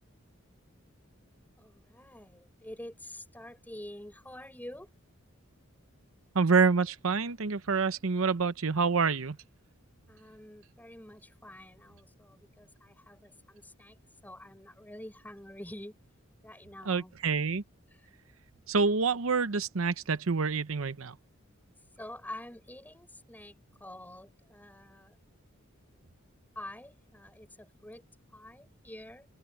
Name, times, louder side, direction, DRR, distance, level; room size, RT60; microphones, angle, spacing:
voice 1, 1.6-4.9 10.1-14.0 14.2-15.9 16.4-17.1 17.9-18.1 22.0-25.2 26.5-28.0 28.3-29.3, left 1 dB, 10° left, 6.5 m, -47 dB
voice 2, 6.3-9.4 16.9-17.6 18.7-21.2, right 4 dB, 80° right, 0.8 m, -27 dB
head